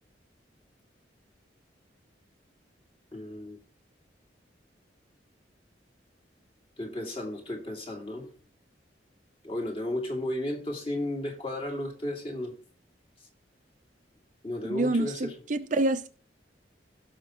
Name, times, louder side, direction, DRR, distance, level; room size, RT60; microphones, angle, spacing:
voice 1, 3.1-3.6 6.8-8.3 9.4-12.6 14.4-15.3, left 1 dB, 30° left, 2.2 m, -34 dB
voice 2, 14.6-16.1, right 2 dB, 45° right, 0.6 m, -27 dB
16.5 x 5.8 x 3.0 m
head